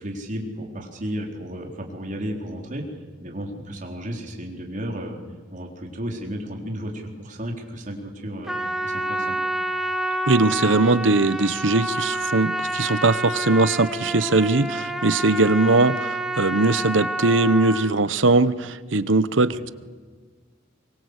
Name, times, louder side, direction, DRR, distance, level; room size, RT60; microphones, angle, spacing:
voice 1, 0.0-2.8 3.2-5.2 5.5-9.4 19.5-19.6, equal, 45° right, 1 dB, 4.1 m, -33 dB
Trumpet, 8.4-17.9, right 1 dB, ahead, 1.7 m, -28 dB
voice 2, 10.3-19.7, right 3 dB, 75° right, 16 dB, 1.0 m, -20 dB
24.0 x 23.5 x 8.2 m, 1.5 s
head